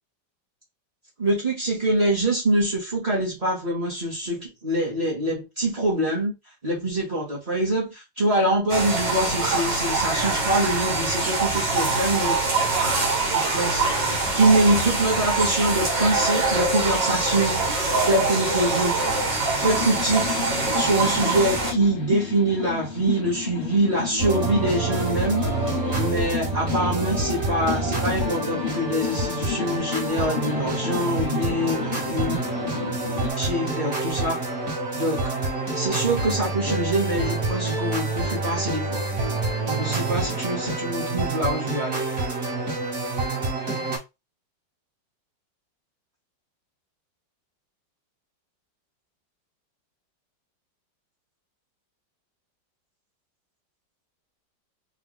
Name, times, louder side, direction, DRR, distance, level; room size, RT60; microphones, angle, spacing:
voice 1, 1.2-6.3 6.6-12.3 13.3-19.0 19.6-20.3 20.7-25.4 25.9-32.4 33.4-34.5 34.9-35.3 35.7-39.1 39.8-42.0 42.4-42.5, right 1 dB, 30° right, 0.8 m, -24 dB
sound 1, 8.7-21.7, right 3 dB, 80° right, 1.8 m, -24 dB
sound 2, 19.6-33.3, left 8 dB, 45° left, 0.7 m, -33 dB
sound 3, 24.2-44.0, right 3 dB, 50° right, 2.0 m, -27 dB
3.9 x 2.4 x 3.1 m
omnidirectional pair, 1.9 m